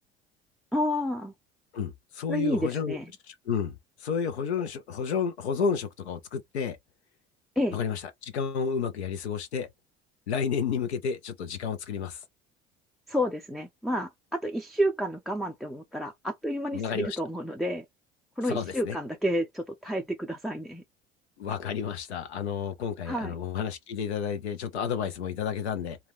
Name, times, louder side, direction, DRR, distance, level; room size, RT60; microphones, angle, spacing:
voice 1, 0.7-1.3 2.3-3.0 7.6-7.8 13.1-17.8 18.4-20.8 23.1-23.3, equal, ahead, 0.3 m, -30 dB
voice 2, 1.7-3.0 3.3-6.8 7.7-9.7 10.3-12.2 16.7-17.2 18.4-19.0 21.4-26.0, left 6 dB, 85° left, 0.6 m, -31 dB
2.2 x 2.2 x 3.2 m
figure-of-eight pair, 60°, 32 cm